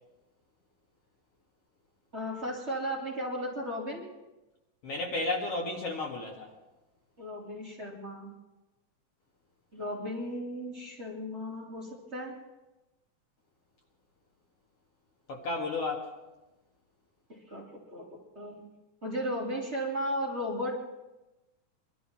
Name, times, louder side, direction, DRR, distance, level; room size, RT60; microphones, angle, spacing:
voice 1, 2.1-4.1 7.2-8.3 9.7-12.4 17.3-18.6 19.0-20.8, equal, 20° right, -4 dB, 2.5 m, -35 dB
voice 2, 4.8-6.5 15.3-16.1, left 2 dB, 50° left, -1 dB, 2.6 m, -33 dB
24.5 x 12.5 x 4.3 m, 1.0 s
omnidirectional pair, 3.7 m